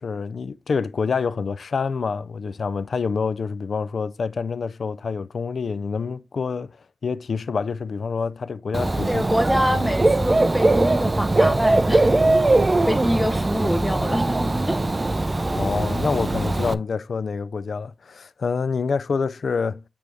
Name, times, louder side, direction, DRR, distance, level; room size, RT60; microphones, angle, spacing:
voice 1, 0.0-6.8 7.0-9.2 15.5-19.8, left 5 dB, 85° left, 0.3 m, -27 dB
Dog / Bird, 8.7-16.7, right 2 dB, 30° right, 0.4 m, -21 dB
voice 2, 9.1-12.6 12.9-14.8, equal, ahead, 0.8 m, -25 dB
9.0 x 3.3 x 3.4 m
wide cardioid pair, 105°, 0 cm